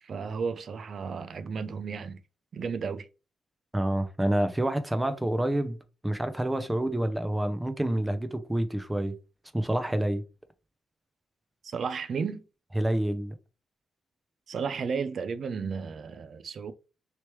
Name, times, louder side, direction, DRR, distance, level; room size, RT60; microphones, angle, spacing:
voice 1, 0.0-2.2 2.5-3.1 11.6-12.4 14.5-16.7, right 5 dB, 60° right, 0.4 m, -33 dB
voice 2, 3.7-5.8 6.0-9.1 9.5-10.2 12.7-13.4, right 1 dB, 10° right, 0.6 m, -28 dB
3.0 x 3.0 x 3.1 m
cardioid pair, 70°, 0 cm